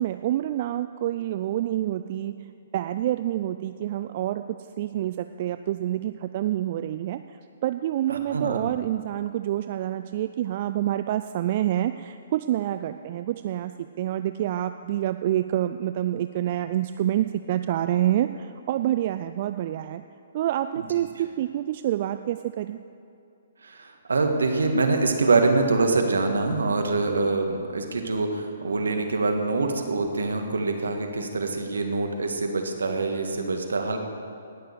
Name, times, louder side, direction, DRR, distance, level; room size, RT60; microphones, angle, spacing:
voice 1, 0.0-2.3 2.7-20.0 20.3-22.8, right 12 dB, 45° right, 10 dB, 0.4 m, -27 dB
voice 2, 8.1-8.6 20.8-20.9 23.6-34.0, right 3 dB, 75° right, 4 dB, 1.6 m, -25 dB
18.5 x 6.7 x 6.8 m, 2.5 s
figure-of-eight pair, 125°, 0 cm